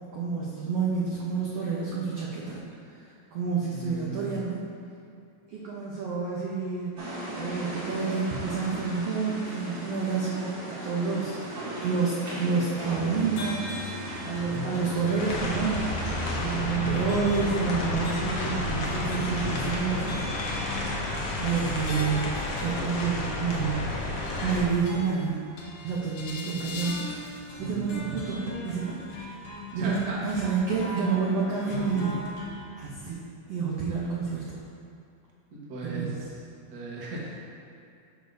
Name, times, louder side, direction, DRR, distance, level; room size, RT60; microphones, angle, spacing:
voice 1, 0.1-2.6 3.3-4.6 5.5-7.0 7.3-13.8 14.2-16.1 16.4-20.3 20.6-21.0 21.4-22.3 22.6-23.9 24.4-25.4 25.8-27.0 27.6-29.0 29.7-30.0 30.2-32.2 32.8-33.2 33.5-34.4 35.8-36.1, right 5 dB, 80° right, -6 dB, 1.4 m, -29 dB
voice 2, 3.7-4.4 27.6-28.1 29.7-30.2 35.5-36.1 36.7-37.4, right 2 dB, 65° right, -6 dB, 1.0 m, -37 dB
sound 1, 7.0-16.6, right 1 dB, 40° right, 2.2 m, -38 dB
sound 2, 12.9-32.6, left 3 dB, 85° left, 2.8 m, -39 dB
sound 3, 15.2-24.7, left 2 dB, 70° left, 1.5 m, -31 dB
12.5 x 5.1 x 2.6 m, 2.6 s
omnidirectional pair, 4.0 m